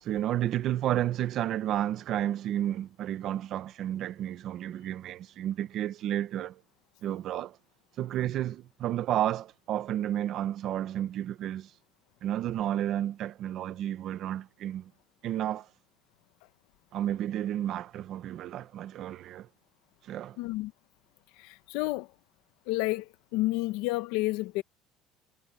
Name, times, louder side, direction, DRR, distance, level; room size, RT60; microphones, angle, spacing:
voice 1, 0.0-6.6 7.0-7.6 8.0-11.7 12.2-14.9 15.2-15.7 16.9-19.5 20.0-20.4, right 12 dB, 45° right, 0.9 m, -31 dB
voice 2, 20.4-20.7 21.4-22.1 22.7-24.6, left 19 dB, 85° left, 1.0 m, -30 dB
cardioid pair, 175°, 0 cm